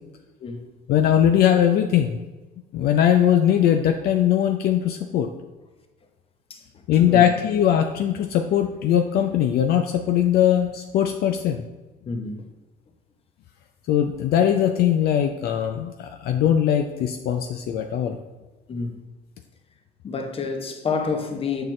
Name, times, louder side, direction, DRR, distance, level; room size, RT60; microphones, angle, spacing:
voice 1, 0.9-2.2 2.7-5.3 6.9-11.6 13.9-18.2, left 10 dB, 65° left, 0.5 m, -20 dB
voice 2, 12.1-12.4 18.7-19.0 20.0-21.6, left 4 dB, 35° left, 0.9 m, -28 dB
6.6 x 5.9 x 3.2 m
cardioid pair, 110°, 17 cm